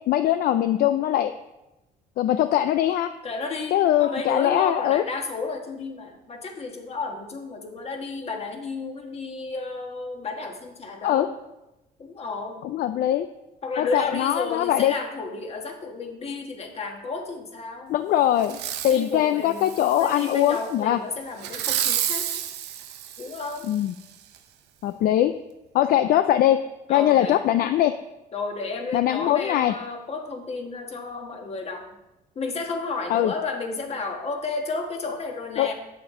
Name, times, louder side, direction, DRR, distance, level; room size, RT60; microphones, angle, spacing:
voice 1, 0.1-1.3 2.2-3.1 3.7-5.0 11.0-11.3 12.7-13.3 13.8-14.9 17.9-18.6 18.8-21.0 23.7-23.9 24.8-25.3 25.7-26.6 26.9-27.9 28.9-29.7 33.1-33.3 35.6-35.7, left 12 dB, 60° left, 10 dB, 0.4 m, -21 dB
voice 2, 3.2-11.4 12.0-12.7 13.6-18.0 18.9-22.3 23.2-23.7 26.9-27.4 28.3-31.9 32.3-35.7, left 3 dB, 40° left, 3 dB, 1.5 m, -32 dB
Fireworks, 18.4-19.0 19.6-20.6 21.4-23.8 24.3-24.4, right 11 dB, 80° right, 0.8 m, -30 dB
8.6 x 7.3 x 3.7 m, 0.95 s
cardioid pair, 110°, 17 cm